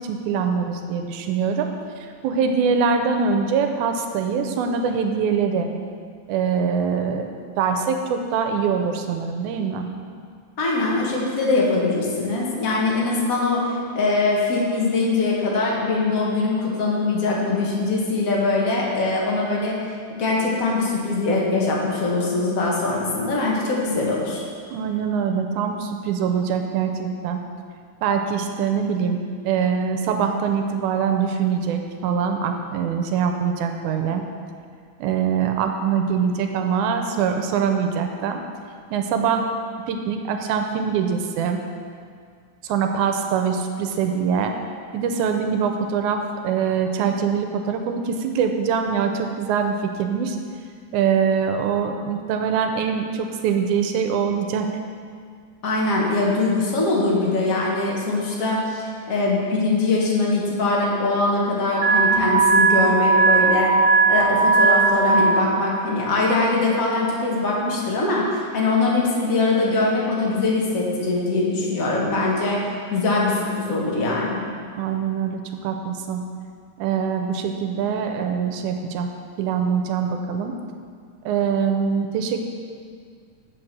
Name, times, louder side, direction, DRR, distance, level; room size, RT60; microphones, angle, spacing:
voice 1, 0.0-1.7 2.2-5.7 6.3-7.3 7.6-9.9 24.7-27.5 28.0-34.3 35.0-38.4 38.9-39.5 39.9-41.6 42.6-44.5 44.9-50.4 50.9-54.7 74.8-76.3 76.8-79.1 79.4-80.5 81.3-82.4, right 6 dB, 85° right, 5 dB, 2.0 m, -23 dB
voice 2, 10.6-19.7 20.1-24.4 55.6-63.7 64.1-72.6 72.9-74.4, left 3 dB, 50° left, -4 dB, 1.0 m, -22 dB
Alarm, 61.7-65.2, right 4 dB, 65° right, 1.8 m, -17 dB
7.8 x 5.0 x 6.0 m, 2.1 s
omnidirectional pair, 3.5 m